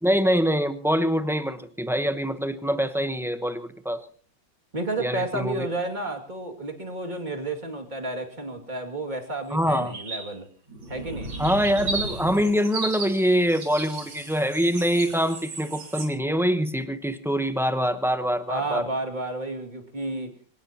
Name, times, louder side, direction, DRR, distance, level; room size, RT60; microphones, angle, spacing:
voice 1, 0.0-4.0 5.0-5.7 9.5-9.9 11.4-18.8, equal, 5° right, 9 dB, 0.3 m, -24 dB
voice 2, 4.7-10.5 10.9-11.3 18.5-20.3, right 2 dB, 25° right, 4 dB, 2.5 m, -31 dB
sound 1, 9.6-10.3 10.7-16.1, right 3 dB, 85° right, 3.6 m, -35 dB
26.0 x 18.0 x 2.9 m, 0.41 s
omnidirectional pair, 2.1 m